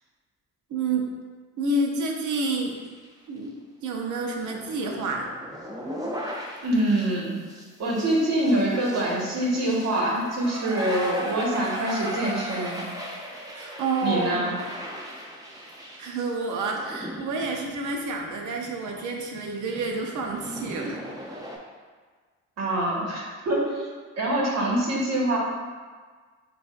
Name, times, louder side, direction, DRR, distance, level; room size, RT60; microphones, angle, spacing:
voice 1, 0.7-1.1 1.6-2.8 3.3-3.6 3.8-5.3 13.5-14.6 16.0-21.0, right 3 dB, 75° right, 1 dB, 0.8 m, -29 dB
sound 1, 2.6-3.1 3.4-3.5 4.0-21.6, equal, 10° right, 0.9 m, -38 dB
voice 2, 6.6-7.4 7.8-12.9 14.0-14.5 22.6-23.9 24.1-25.4, right 1 dB, 60° right, -4 dB, 1.5 m, -25 dB
6.9 x 2.5 x 2.5 m, 1.5 s
cardioid pair, 90°, 30 cm